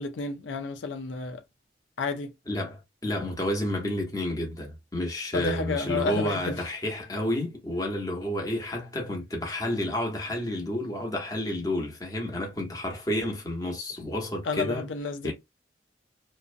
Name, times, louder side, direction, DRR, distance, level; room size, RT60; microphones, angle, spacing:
voice 1, 0.0-1.4 2.0-2.3 5.3-6.6 14.4-15.3, left 4 dB, 85° left, 0.5 m, -31 dB
voice 2, 2.5-14.9 15.2-15.3, left 1 dB, 20° left, 0.7 m, -30 dB
2.5 x 2.0 x 2.5 m
head